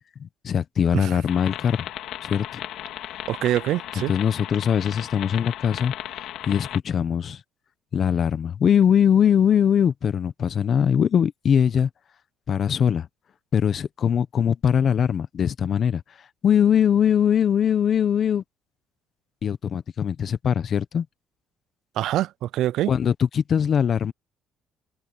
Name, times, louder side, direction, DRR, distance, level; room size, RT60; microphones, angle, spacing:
voice 1, 0.2-1.9 2.2-2.6 4.0-5.9 6.5-7.4 7.9-11.9 12.5-13.1 13.5-18.4 19.4-21.1 22.9-24.1, left 8 dB, 50° left, 1.1 m, -21 dB
sound 1, 1.3-6.8, left 13 dB, 75° left, 2.8 m, -36 dB
voice 2, 3.3-4.1 22.0-22.9, right 13 dB, 70° right, 0.4 m, -25 dB
cardioid pair, 100°, 0 cm